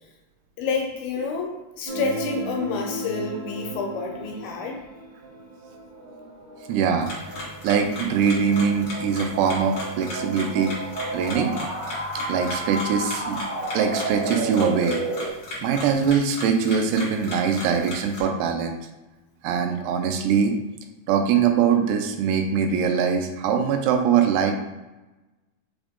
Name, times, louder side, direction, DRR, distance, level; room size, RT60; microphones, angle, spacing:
voice 1, 0.6-4.8, left 4 dB, 80° left, 1 dB, 2.3 m, -29 dB
sound 1, 1.9-15.3, right 2 dB, 70° right, 2.1 m, -33 dB
voice 2, 6.7-7.4 7.6-10.8 11.1-11.6 12.3-13.4 13.7-15.0 15.6-18.8 19.4-20.6 21.1-24.5, right 6 dB, 85° right, 5 dB, 2.6 m, -22 dB
sound 2, 7.0-18.2, left 1 dB, 60° left, 1.3 m, -37 dB
6.1 x 2.5 x 3.5 m, 1.1 s
omnidirectional pair, 4.6 m